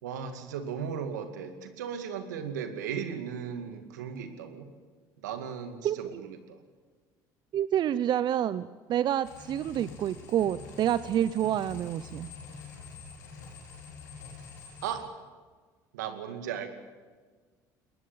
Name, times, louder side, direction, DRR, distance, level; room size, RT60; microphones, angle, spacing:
voice 1, 0.0-4.7 5.2-6.6 14.8-15.1 15.9-16.7, right 7 dB, 90° right, 8 dB, 2.3 m, -36 dB
voice 2, 7.5-12.3, right 10 dB, 55° right, 16 dB, 0.7 m, -28 dB
sound 1, 9.2-15.0, left 4 dB, 90° left, 5.0 m, -46 dB
22.0 x 19.5 x 8.7 m, 1.5 s
hypercardioid pair, 70°, 9 cm